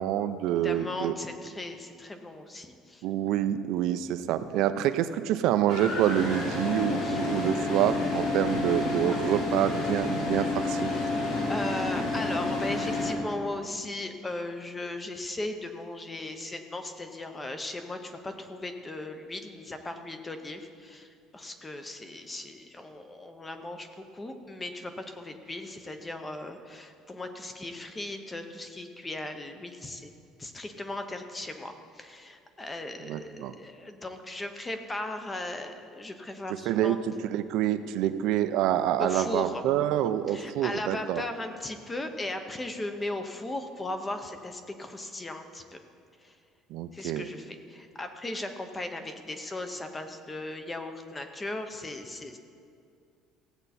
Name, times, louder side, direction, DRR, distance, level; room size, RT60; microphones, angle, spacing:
voice 1, 0.0-1.1 3.0-10.9 33.1-33.5 36.7-41.2 46.7-47.2, right 11 dB, 60° right, 11 dB, 0.5 m, -27 dB
voice 2, 0.6-3.0 7.0-7.3 11.5-30.1 30.4-37.0 39.0-39.6 40.3-45.8 46.2-46.4 46.9-52.4, left 2 dB, 15° left, 7 dB, 0.7 m, -37 dB
sound 1, 5.7-13.1, left 2 dB, 75° left, 3.1 m, -29 dB
16.5 x 8.0 x 4.2 m, 2.4 s
cardioid pair, 170°, 0 cm